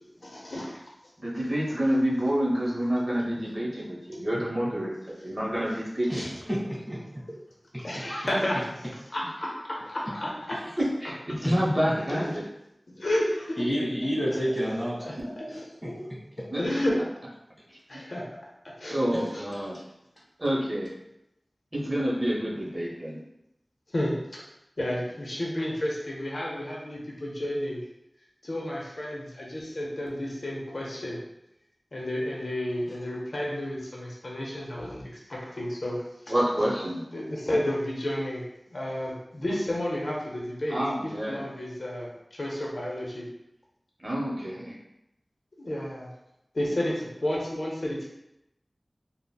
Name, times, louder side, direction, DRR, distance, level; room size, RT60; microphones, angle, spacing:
voice 1, 0.2-0.7 7.8-8.6 9.1-10.6 12.1-12.2 12.9-13.6 15.0-16.1 16.6-17.0 17.9-18.2 18.8-19.0 19.3-19.4 23.9-24.4 24.8-27.8 28.4-31.2 31.9-36.0 37.1-43.3 45.6-46.1 46.5-48.1, left 1 dB, 75° left, -3 dB, 0.6 m, -31 dB
voice 2, 1.2-6.3 11.0-12.4 16.5-16.6 18.9-19.8 20.4-20.9 21.7-23.2 36.3-37.0 40.7-41.4 44.0-44.8 46.6-46.8, equal, 30° right, -5 dB, 0.8 m, -28 dB
voice 3, 6.1-7.2 7.7-7.8 11.4-11.5 13.6-15.0 15.5-15.9 19.1-19.2 19.5-19.6, equal, 10° right, -6 dB, 1.3 m, -30 dB
3.7 x 2.0 x 2.2 m, 0.85 s
wide cardioid pair, 50°, 0 cm